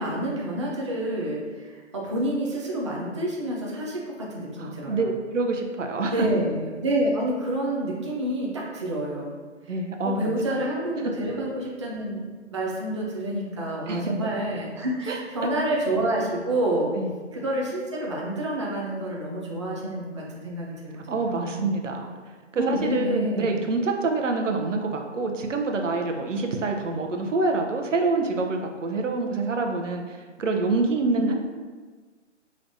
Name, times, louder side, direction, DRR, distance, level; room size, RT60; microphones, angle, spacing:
voice 1, 0.0-5.1 6.1-9.3 9.7-9.8 10.0-12.2 12.5-16.9 17.3-20.7 21.1-21.7 22.5-23.5 31.2-31.3, right 1 dB, 25° right, -4 dB, 0.4 m, -28 dB
voice 2, 4.6-6.3 9.7-10.4 13.3-14.1 15.1-15.5 17.0-17.1 21.1-22.1 22.5-31.3, right 3 dB, 90° right, 3 dB, 0.8 m, -26 dB
5.2 x 3.2 x 2.6 m, 1.4 s
hypercardioid pair, 155°, 36 cm